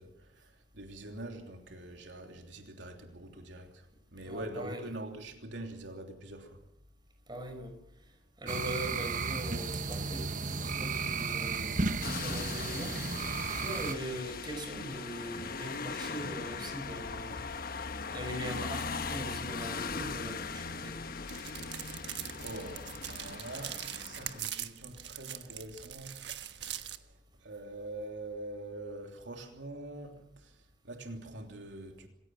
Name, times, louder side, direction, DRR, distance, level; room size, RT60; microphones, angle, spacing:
voice 1, 0.0-3.8 4.1-6.6 21.8-21.9 22.4-27.1 27.4-30.5 30.8-32.1, right 1 dB, 90° right, 3.2 m, -44 dB
voice 2, 4.2-4.8 7.3-7.8 8.4-13.3 13.6-17.5 18.1-21.0, equal, 25° right, 5.7 m, -41 dB
sound 1, 8.5-13.9, right 4 dB, 45° right, 1.1 m, -34 dB
sound 2, 12.0-24.4, left 4 dB, 55° left, 1.2 m, -39 dB
sound 3, 21.3-27.0, right 11 dB, 70° right, 1.4 m, -42 dB
27.0 x 17.0 x 7.4 m
head